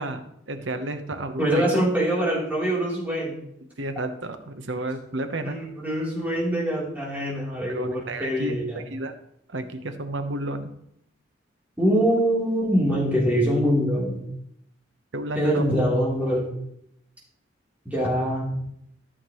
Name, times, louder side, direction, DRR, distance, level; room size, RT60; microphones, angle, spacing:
voice 1, 0.0-1.7 3.8-5.6 7.7-8.6 8.9-9.1 9.5-10.7 15.1-15.6, right 1 dB, 70° right, 7 dB, 1.0 m, -31 dB
voice 2, 1.4-3.4 5.4-8.8 11.8-14.2 15.3-16.5 17.8-18.5, equal, 10° right, -6 dB, 3.2 m, -24 dB
14.0 x 6.7 x 3.0 m, 0.75 s
head